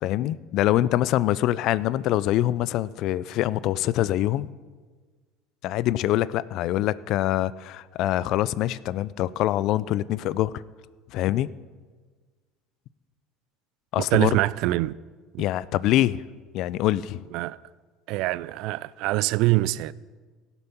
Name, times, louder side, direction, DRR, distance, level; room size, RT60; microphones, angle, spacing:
voice 1, 0.0-4.5 5.6-10.5 11.1-11.5 13.9-14.3 15.4-16.2 16.5-17.2, left 14 dB, 60° left, 0.4 m, -24 dB
voice 2, 14.0-14.9 15.3-15.4 17.3-17.6 18.1-19.9, right 18 dB, 65° right, 0.3 m, -24 dB
17.0 x 7.0 x 5.4 m
hypercardioid pair, 80°, 0 cm